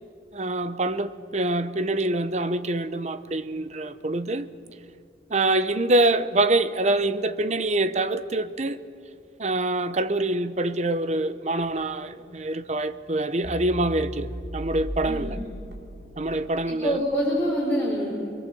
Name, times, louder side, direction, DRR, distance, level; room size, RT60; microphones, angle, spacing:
voice 1, 0.3-4.5 5.3-8.8 9.4-15.4 16.2-17.0, right 2 dB, 40° right, 0.8 m, -25 dB
sound 1, 11.7-12.0 12.6-12.8 13.0-13.1 13.4-16.6, equal, 65° right, 3.8 m, -36 dB
voice 2, 15.0-15.4 16.7-18.1, equal, 10° left, 4.5 m, -25 dB
29.5 x 23.0 x 7.8 m
head